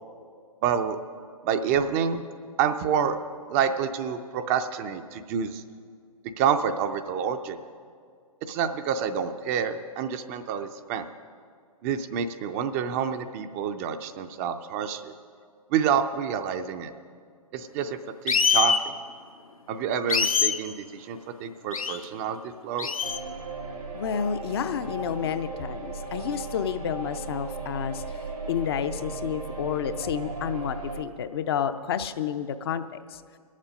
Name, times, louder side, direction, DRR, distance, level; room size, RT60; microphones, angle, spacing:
voice 1, 0.6-1.0 1.4-2.2 2.6-3.2 3.5-5.6 6.4-7.6 8.5-11.0 11.8-15.1 15.7-16.9 17.5-19.0 19.7-22.9, right 7 dB, 25° right, 8 dB, 0.5 m, -28 dB
sound 1, 18.3-18.8 20.1-20.6 21.7-22.0 22.8-23.2, left 6 dB, 70° left, 0.9 m, -23 dB
sound 2, 23.0-31.0, right 3 dB, 90° right, 2.0 m, -37 dB
voice 2, 23.9-28.2 28.5-33.2, left 8 dB, 45° left, 10 dB, 0.6 m, -30 dB
22.0 x 7.4 x 5.1 m, 2.1 s
figure-of-eight pair, 120°, 19 cm